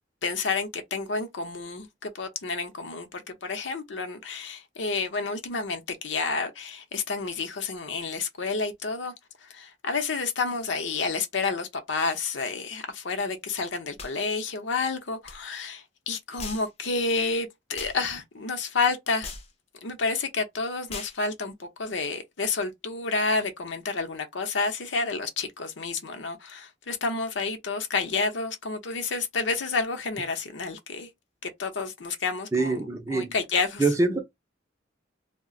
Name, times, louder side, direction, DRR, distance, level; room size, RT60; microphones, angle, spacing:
voice 1, 0.2-9.1 9.4-19.3 19.8-31.1 31.4-32.7 33.1-33.8, left 4 dB, 70° left, 0.7 m, -30 dB
sound 1, 14.0-14.2 15.2-15.4 16.4-16.7 17.7-18.0 19.2-19.5 20.9-21.2, left 4 dB, 30° left, 0.5 m, -38 dB
voice 2, 32.5-33.3 33.8-34.2, right 3 dB, 15° right, 0.5 m, -24 dB
2.4 x 2.1 x 3.7 m
head